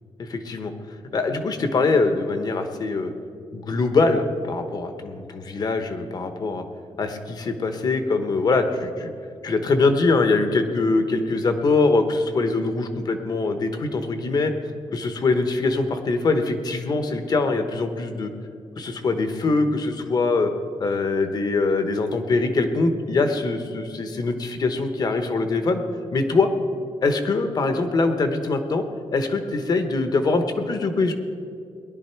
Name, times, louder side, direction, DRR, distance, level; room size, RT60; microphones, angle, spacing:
voice 1, 0.2-0.7 1.1-3.1 3.5-6.6 7.0-9.1 9.4-14.5 14.9-18.3 18.8-20.5 20.8-25.8 26.1-26.5 27.0-28.8 29.1-31.1, left 3 dB, 45° left, 8 dB, 1.0 m, -23 dB
19.5 x 11.0 x 4.5 m, 2.5 s
wide cardioid pair, 155°, 10 cm